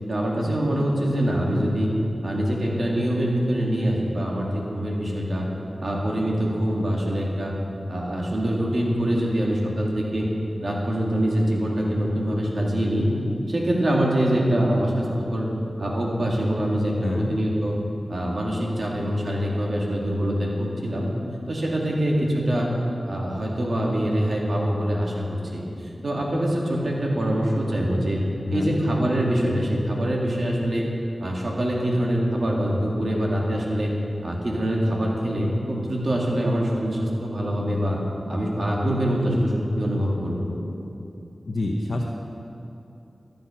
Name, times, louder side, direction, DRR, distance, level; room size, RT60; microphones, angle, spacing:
voice 1, 0.1-1.9 2.2-5.5 5.8-7.5 7.9-10.3 10.6-13.1 13.5-15.5 15.8-17.8 18.1-21.1 21.5-22.7 23.1-28.2 28.5-30.8 31.2-33.9 34.2-38.0 38.3-40.5, equal, 65° right, -2 dB, 2.2 m, -24 dB
voice 2, 17.0-17.3 28.5-28.8 41.5-42.1, left 2 dB, 70° left, -1 dB, 0.9 m, -26 dB
13.5 x 7.8 x 5.8 m, 2.8 s
cardioid pair, 40°, 0 cm